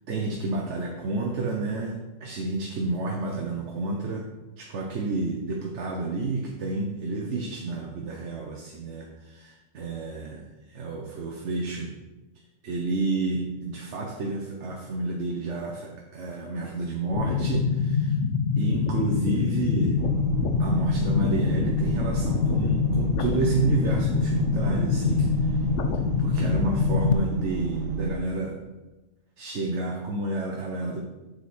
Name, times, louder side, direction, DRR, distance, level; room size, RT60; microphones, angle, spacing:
voice 1, 0.1-4.3 4.6-11.9 12.6-18.2 18.6-20.0 20.6-25.6 26.2-28.6 29.4-31.0, right 3 dB, 65° right, 0 dB, 1.2 m, -30 dB
sound 1, 17.1-27.1, left 6 dB, 70° left, 1.0 m, -25 dB
sound 2, 20.0-28.2, right 4 dB, 90° right, 1.1 m, -31 dB
8.0 x 6.5 x 4.3 m, 1.1 s
omnidirectional pair, 1.3 m